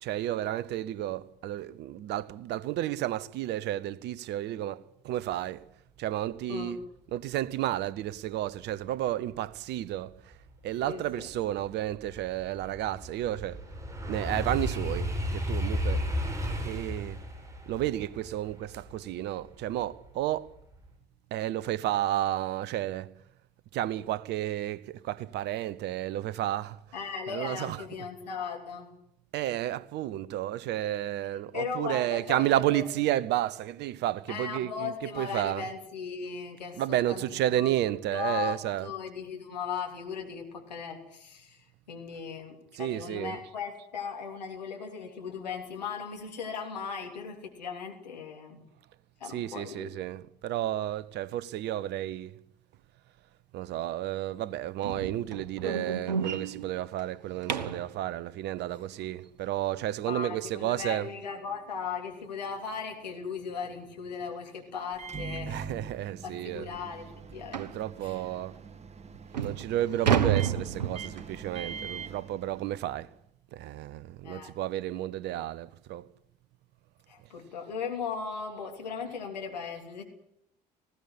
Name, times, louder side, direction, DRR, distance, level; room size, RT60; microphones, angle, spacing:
voice 1, 0.0-5.6 6.0-6.8 7.1-10.3 10.6-13.6 14.1-16.1 16.4-17.2 17.7-20.5 21.3-23.1 23.7-26.8 27.3-27.8 29.3-35.7 36.8-38.9 42.7-43.4 49.3-52.4 53.5-61.1 65.5-66.7 67.6-68.6 69.3-73.1 73.5-76.1, right 13 dB, 55° right, 1.0 m, -32 dB
sound 1, 10.4-10.5 11.0-20.1 20.5-20.9, equal, 15° right, 7.3 m, -34 dB
voice 2, 10.9-11.3 26.9-28.9 31.5-32.9 34.3-37.2 37.5-37.7 38.1-48.6 49.2-49.9 60.0-65.7 66.2-67.6 68.0-68.2 74.2-74.5 77.1-80.0, left 6 dB, 80° left, 3.4 m, -37 dB
sound 2, 54.8-57.9 60.7-60.8 61.3-61.5 61.9-62.0 62.4-62.5 63.6-63.8 64.2-64.3 65.0-65.1 65.4-65.5 66.0-66.1 67.5-67.8 68.6-68.7 69.1-71.4, right 8 dB, 85° right, 1.1 m, -31 dB
Microwave oven, 64.9-73.1, right 5 dB, 30° right, 2.0 m, -43 dB
19.5 x 16.5 x 9.9 m
figure-of-eight pair, 60°, 21 cm